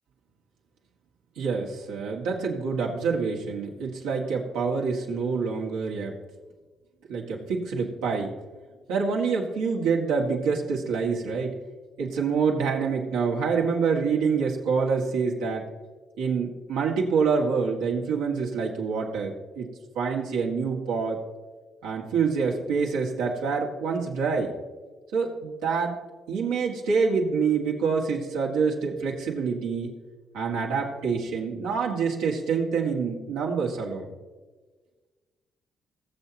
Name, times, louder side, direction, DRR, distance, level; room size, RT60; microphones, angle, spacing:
voice 1, 1.4-6.1 7.1-8.3 8.9-11.6 12.0-15.7 16.2-19.7 19.9-21.2 21.8-24.5 25.1-26.0 26.3-29.9 30.3-34.1, right 5 dB, 90° right, -2 dB, 2.1 m, -26 dB
21.0 x 7.2 x 3.0 m, 1.3 s
supercardioid pair, 60°, 0 cm